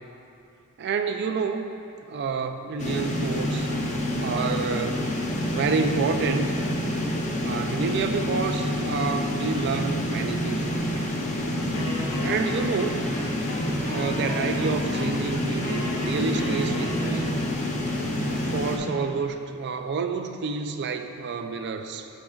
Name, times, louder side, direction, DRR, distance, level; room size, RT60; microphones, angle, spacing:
voice 1, 0.8-1.7 2.1-3.7 4.1-5.0 5.5-6.6 7.4-11.1 12.2-13.2 13.9-17.3 18.5-22.1, right 5 dB, 50° right, 7 dB, 0.4 m, -29 dB
sound 1, 2.8-18.8, left 1 dB, 35° left, 0.7 m, -28 dB
Wind instrument woodwind instrument, 11.7-17.6, left 1 dB, 70° left, 1.2 m, -36 dB
12.0 x 5.1 x 2.4 m, 2.7 s
head